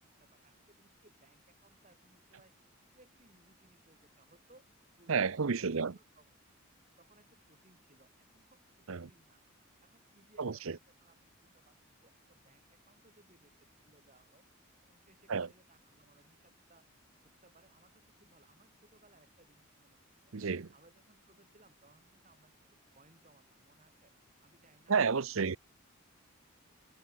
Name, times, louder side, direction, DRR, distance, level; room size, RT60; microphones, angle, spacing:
voice 1, 0.0-2.5 2.9-4.7 5.0-5.7 5.9-6.3 7.0-9.4 9.8-14.5 14.8-16.9 17.2-20.0 20.3-20.4 20.7-22.7 22.9-24.1 24.4-25.3, right 2 dB, 35° right, 4.2 m, -66 dB
voice 2, 5.1-5.9 8.9-9.1 10.4-10.8 15.3-15.5 20.3-20.7 24.9-25.6, right 5 dB, 70° right, 0.7 m, -31 dB
head